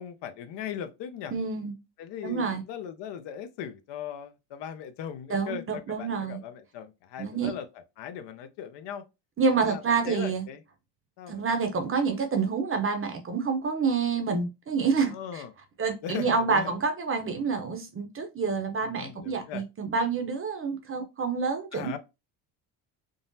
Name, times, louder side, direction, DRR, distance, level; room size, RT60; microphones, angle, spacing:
voice 1, 0.0-1.3 2.0-9.0 9.6-10.6 11.2-11.4 15.1-15.5 16.0-16.7 18.8-19.6 21.7-22.0, left 9 dB, 65° left, 0.6 m, -38 dB
voice 2, 1.3-1.7 2.2-2.6 5.3-6.4 7.2-7.5 9.4-10.5 11.3-15.4 15.8-22.0, right 5 dB, 30° right, 0.6 m, -28 dB
3.7 x 2.0 x 2.6 m
cardioid pair, 110°, 46 cm